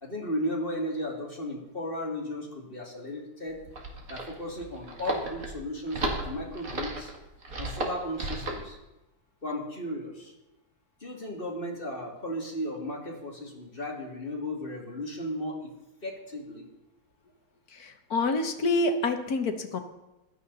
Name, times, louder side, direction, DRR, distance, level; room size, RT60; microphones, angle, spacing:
voice 1, 0.0-3.6 4.1-7.1 7.6-8.8 9.4-10.3 11.0-15.7 16.0-16.7, left 1 dB, 25° left, 0 dB, 2.7 m, -35 dB
sound 1, 3.5-8.7, right 2 dB, 45° right, 2.5 m, -34 dB
voice 2, 17.7-19.8, left 3 dB, 50° left, 7 dB, 1.6 m, -27 dB
15.5 x 12.5 x 4.1 m, 0.99 s
omnidirectional pair, 2.2 m